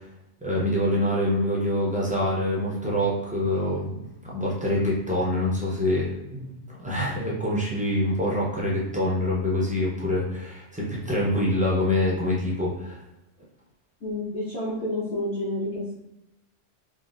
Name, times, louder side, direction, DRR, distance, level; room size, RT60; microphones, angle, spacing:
voice 1, 0.4-13.0, left 1 dB, 10° right, -5 dB, 0.4 m, -25 dB
voice 2, 14.0-15.9, left 1 dB, 65° left, -10 dB, 1.2 m, -29 dB
3.5 x 2.3 x 2.5 m, 0.89 s
omnidirectional pair, 1.3 m